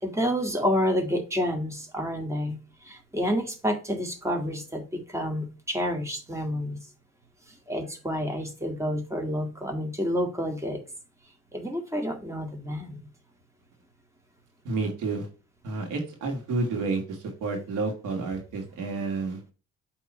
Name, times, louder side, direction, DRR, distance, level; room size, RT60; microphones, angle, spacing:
voice 1, 0.0-6.8 7.7-10.8 11.5-13.1, equal, 10° right, 3 dB, 2.0 m, -29 dB
voice 2, 14.6-15.3 15.6-19.4, right 3 dB, 90° right, 2 dB, 2.5 m, -30 dB
8.2 x 3.7 x 4.5 m, 0.33 s
cardioid pair, 90°, 30 cm